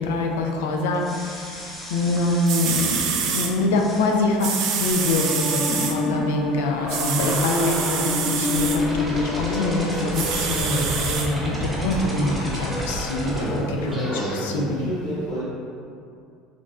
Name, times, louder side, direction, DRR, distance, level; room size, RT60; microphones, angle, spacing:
voice 1, 0.0-14.9, left 2 dB, 80° left, 2 dB, 0.3 m, -25 dB
sound 1, 0.9-3.2 3.7-4.2 5.0-5.5, left 1 dB, 20° left, 0.8 m, -40 dB
sound 2, 2.2-2.3 2.5-3.5 4.4-5.9 6.9-8.8 10.1-11.3 11.9-12.0, right 6 dB, 65° right, 0.3 m, -26 dB
sound 3, 5.0-14.4, left 1 dB, 5° right, 0.9 m, -28 dB
voice 2, 13.3-15.4, equal, 45° left, -12 dB, 1.1 m, -29 dB
3.6 x 2.0 x 2.3 m, 2.4 s
hypercardioid pair, 85°, 0 cm